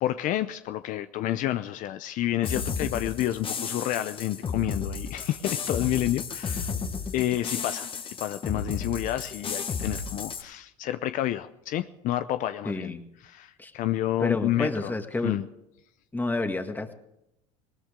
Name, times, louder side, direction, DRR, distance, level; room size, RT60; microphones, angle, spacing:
voice 1, 0.0-6.7 7.1-12.9 13.2-14.9 15.2-15.4, left 13 dB, 55° left, 11 dB, 0.7 m, -29 dB
sound 1, 2.4-10.4, left 5 dB, 35° left, 1.7 m, -33 dB
voice 2, 12.6-13.0 13.6-13.7 14.2-15.4 16.1-16.9, left 2 dB, 10° left, 6 dB, 1.9 m, -29 dB
20.0 x 19.0 x 3.7 m, 0.83 s
supercardioid pair, 90°, 16 cm